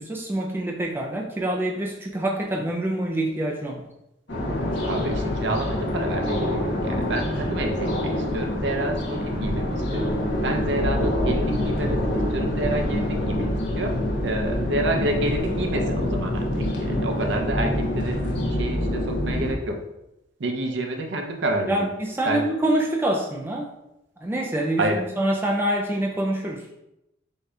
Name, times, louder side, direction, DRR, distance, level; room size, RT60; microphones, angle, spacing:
voice 1, 0.0-3.8 21.7-23.7 24.2-26.7, right 1 dB, 10° right, -1 dB, 0.3 m, -26 dB
sound 1, 4.3-19.5, left 1 dB, 65° left, 1.0 m, -26 dB
voice 2, 4.8-10.2 10.4-14.0 14.2-18.2 18.5-19.8 20.4-21.9 22.2-22.5 24.8-25.0, right 1 dB, 65° right, 3 dB, 0.6 m, -29 dB
8.0 x 2.7 x 2.3 m, 0.89 s
head